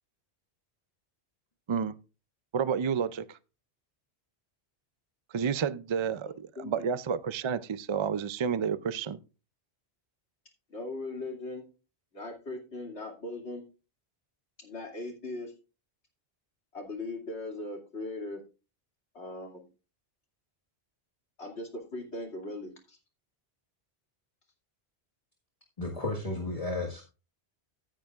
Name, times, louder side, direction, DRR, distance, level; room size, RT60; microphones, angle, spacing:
voice 1, 2.5-3.4 5.3-9.2, right 7 dB, 45° right, 0.3 m, -30 dB
voice 2, 6.6-6.9 10.7-11.7 12.1-13.6 14.6-15.5 16.7-18.4 19.1-19.6 21.4-23.0, left 2 dB, 85° left, 2.9 m, -39 dB
voice 3, 25.8-27.0, left 2 dB, 35° left, 1.7 m, -33 dB
15.0 x 9.0 x 2.4 m
omnidirectional pair, 1.1 m